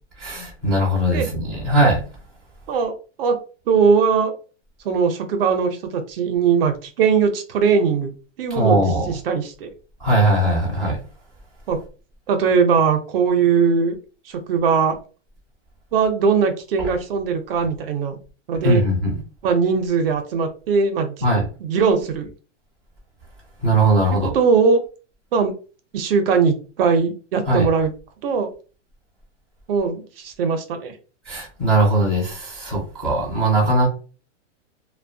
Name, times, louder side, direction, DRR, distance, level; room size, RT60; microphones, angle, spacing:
voice 1, 0.2-2.0 8.5-9.2 10.0-11.0 18.6-19.2 21.2-21.4 23.6-24.3 27.5-27.7 31.3-33.9, right 1 dB, ahead, 0.4 m, -19 dB
voice 2, 3.7-4.3 4.8-8.1 8.4-9.7 11.7-11.8 12.3-14.0 14.3-15.0 15.9-18.2 18.5-18.8 19.4-21.3 21.6-22.3 24.1-24.8 25.3-25.5 25.9-27.9 28.2-28.5 29.7-30.9, right 5 dB, 50° right, 0.5 m, -20 dB
2.6 x 2.1 x 2.5 m
supercardioid pair, 160°, 37 cm